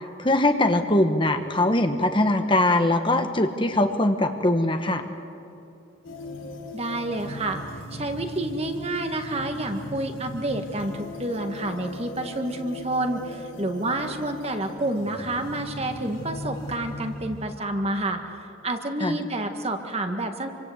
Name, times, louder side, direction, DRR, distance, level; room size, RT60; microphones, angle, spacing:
voice 1, 0.2-5.0 19.0-19.2, left 1 dB, 25° left, 6 dB, 1.1 m, -22 dB
sound 1, 6.0-17.6, left 1 dB, 85° left, 4.9 m, -39 dB
voice 2, 6.7-7.6 7.9-20.5, right 1 dB, 30° right, 5 dB, 1.8 m, -29 dB
27.5 x 25.0 x 8.1 m, 2.7 s
head